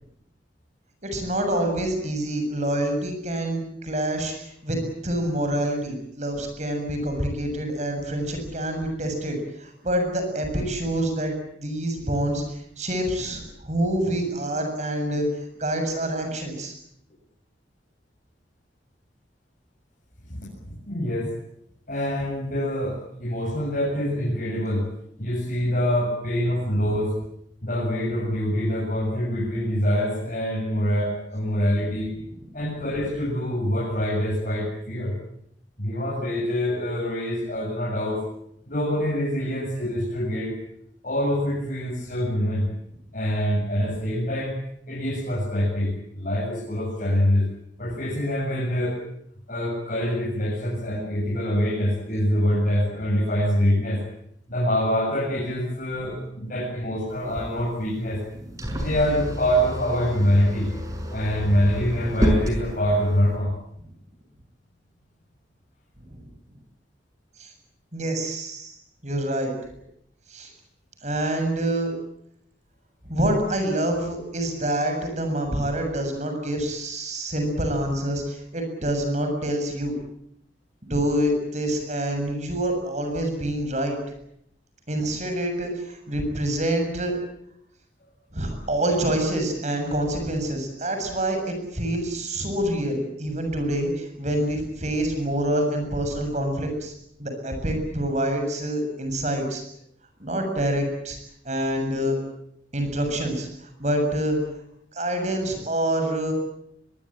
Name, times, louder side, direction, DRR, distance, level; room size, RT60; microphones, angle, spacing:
voice 1, 1.0-16.7 56.1-56.2 58.7-58.8 66.1-66.2 67.4-67.5 67.9-68.8 69.0-69.5 70.3-70.5 71.0-71.9 73.0-79.9 80.8-84.0 84.9-87.2 88.3-96.9 97.2-99.6 100.2-101.2 101.4-102.2 102.7-104.4 104.9-106.3, right 1 dB, 40° right, 5 dB, 7.2 m, -26 dB
voice 2, 20.2-21.3 21.9-24.9 25.2-27.1 27.6-32.1 32.5-35.1 35.8-38.2 38.7-40.6 41.0-42.7 43.1-44.6 44.9-47.5 47.8-49.0 49.5-54.0 54.5-58.2 58.8-60.7 61.1-63.5, equal, 50° left, -4 dB, 7.8 m, -25 dB
sound 1, 57.1-63.4, equal, 20° right, 6.0 m, -29 dB
23.5 x 23.0 x 8.8 m, 0.73 s
head